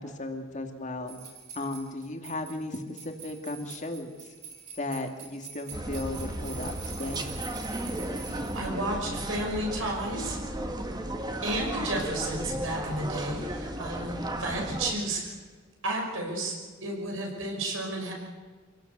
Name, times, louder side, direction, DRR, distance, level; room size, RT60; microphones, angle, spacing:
voice 1, 0.0-1.2 1.5-4.1 4.8-7.2, left 2 dB, 40° left, 4 dB, 2.5 m, -35 dB
sound 1, 1.1-8.7, right 6 dB, 40° right, 5.4 m, -44 dB
sound 2, 5.7-14.9, right 1 dB, 20° right, 2.0 m, -35 dB
voice 2, 8.3-10.4 11.4-15.3 15.8-16.5 16.8-18.1, right 1 dB, 80° right, 0 dB, 5.9 m, -32 dB
26.0 x 16.5 x 8.2 m, 1.4 s
head